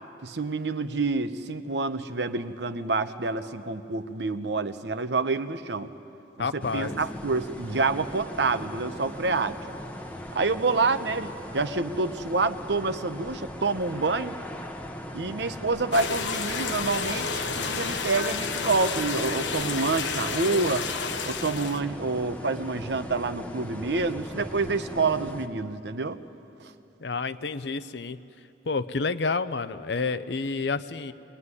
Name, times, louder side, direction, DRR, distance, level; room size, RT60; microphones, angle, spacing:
voice 1, 0.2-5.9 6.4-9.6 10.3-14.4 15.1-20.9 21.2-26.2 26.6-26.7, right 3 dB, 65° right, 10 dB, 0.9 m, -28 dB
voice 2, 6.4-7.0 27.0-28.2 28.6-31.1, left 4 dB, 65° left, 13 dB, 0.7 m, -29 dB
sound 1, 6.6-25.5, equal, 10° left, 1.0 m, -39 dB
sound 2, 15.9-21.8, left 5 dB, 85° left, 1.1 m, -31 dB
22.0 x 20.5 x 9.7 m, 2.8 s
head